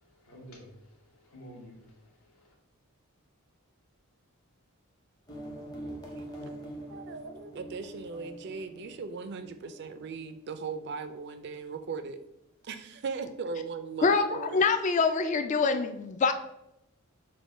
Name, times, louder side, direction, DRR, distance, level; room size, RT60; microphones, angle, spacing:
voice 1, 0.2-2.5, equal, 70° left, -1 dB, 1.3 m, -51 dB
sound 1, 5.3-10.7, right 1 dB, 20° left, 0.7 m, -44 dB
voice 2, 6.9-12.2 12.6-14.6, right 5 dB, 50° right, 9 dB, 0.4 m, -38 dB
voice 3, 14.0-16.3, left 4 dB, 35° left, 8 dB, 0.3 m, -25 dB
6.0 x 2.2 x 3.6 m, 0.84 s
head